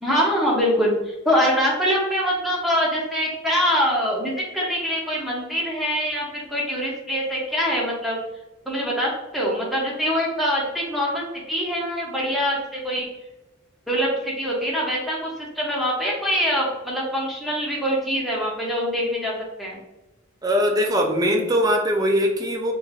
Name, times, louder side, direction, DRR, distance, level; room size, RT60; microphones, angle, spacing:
voice 1, 0.0-8.2 8.7-13.1 13.9-19.3 19.6-19.8, equal, ahead, -5 dB, 0.8 m, -24 dB
voice 2, 20.4-22.7, equal, 20° right, 2 dB, 0.4 m, -21 dB
3.4 x 3.2 x 2.4 m, 1.0 s
head